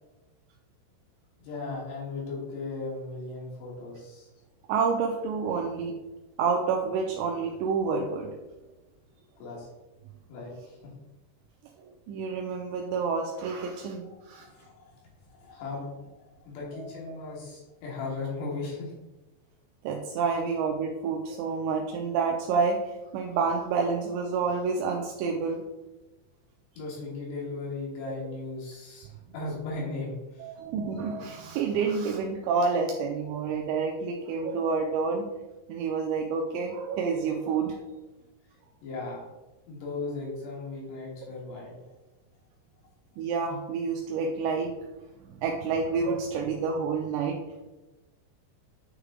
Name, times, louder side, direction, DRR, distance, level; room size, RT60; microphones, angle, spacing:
voice 1, 1.4-4.3 9.4-9.7 10.3-10.9 14.0-15.0 15.3-18.9 26.8-30.6 38.8-39.3 39.7-41.9, left 3 dB, 70° left, -4 dB, 3.7 m, -37 dB
voice 2, 4.7-6.0 6.4-8.3 12.1-14.5 16.7-17.2 19.8-25.6 28.1-28.2 30.4-35.3 35.7-37.8 43.2-44.7 45.2-47.4, right 5 dB, 85° right, 1 dB, 2.6 m, -29 dB
9.0 x 3.3 x 3.6 m, 1.1 s
omnidirectional pair, 5.5 m